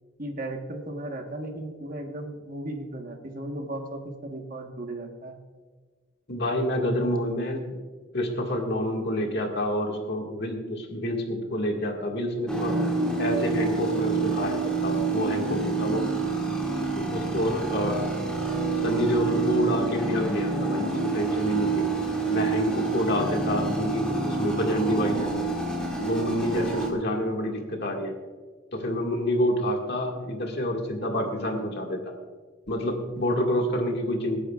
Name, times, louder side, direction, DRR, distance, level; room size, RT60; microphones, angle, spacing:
voice 1, 0.2-5.4, right 1 dB, 40° right, 3 dB, 1.4 m, -36 dB
voice 2, 6.3-7.6 8.1-12.8 13.2-16.1 16.8-18.1 18.8-21.9 22.3-25.5 26.0-28.1 28.7-32.0 32.7-34.4, left 1 dB, 50° left, 1 dB, 1.9 m, -28 dB
sound 1, 12.5-26.9, right 3 dB, 5° left, 2.1 m, -27 dB
25.0 x 9.9 x 2.4 m, 1.5 s
head